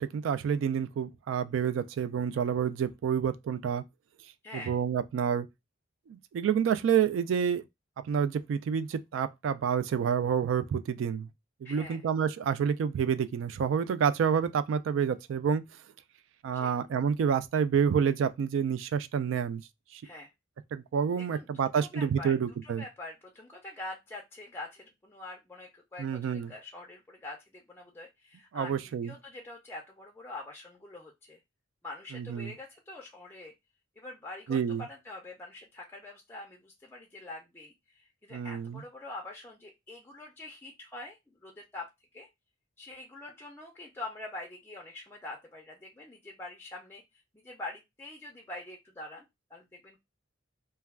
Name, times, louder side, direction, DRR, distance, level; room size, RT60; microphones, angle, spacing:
voice 1, 0.0-3.8 4.7-5.5 6.1-7.6 8.0-11.3 11.6-15.6 16.4-19.6 19.9-20.0 20.7-22.8 26.0-26.5 28.5-29.1 32.1-32.5 34.5-34.8 38.3-38.8, right 7 dB, 85° right, 0.3 m, -28 dB
voice 2, 4.4-4.8 11.6-12.0 16.5-16.7 20.0-20.3 21.3-22.3 22.6-28.7 29.0-31.4 31.8-33.5 34.0-41.9 42.1-42.3 42.8-47.0 47.3-50.0, left 2 dB, 10° left, 0.4 m, -45 dB
2.2 x 2.2 x 3.3 m
head